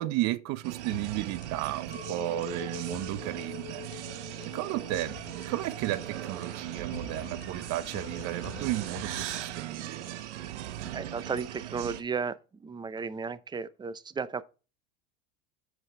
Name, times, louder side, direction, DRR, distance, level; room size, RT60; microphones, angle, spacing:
voice 1, 0.0-3.9 4.5-10.1, right 16 dB, 50° right, 0.8 m, -33 dB
sound 1, 0.6-12.0, right 12 dB, 90° right, 1.0 m, -39 dB
sound 2, 0.9-9.9, left 17 dB, 85° left, 0.5 m, -49 dB
Chink clink, 1.9-7.3, left 10 dB, 25° left, 4.0 m, -46 dB
voice 2, 10.9-14.4, right 5 dB, 15° right, 0.6 m, -34 dB
7.8 x 5.1 x 4.8 m
supercardioid pair, 110°, 34 cm